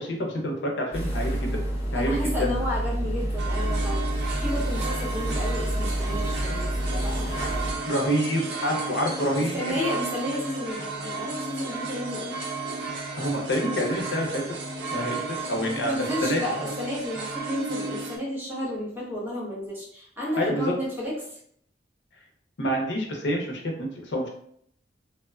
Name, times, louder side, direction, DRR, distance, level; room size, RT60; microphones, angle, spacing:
voice 1, 0.0-1.6 1.9-2.6 7.3-7.5 7.9-9.7 13.2-14.4 14.9-16.7 20.4-20.7 22.6-24.3, equal, 85° left, 1 dB, 0.6 m, -27 dB
sound 1, 0.9-7.7, right 1 dB, 35° left, 1.0 m, -28 dB
voice 2, 1.9-7.3 9.4-12.4 15.8-21.4, left 1 dB, 10° right, -6 dB, 0.8 m, -32 dB
sound 2, 3.4-18.2, right 3 dB, 70° right, 0.5 m, -34 dB
2.9 x 2.1 x 2.3 m, 0.66 s
head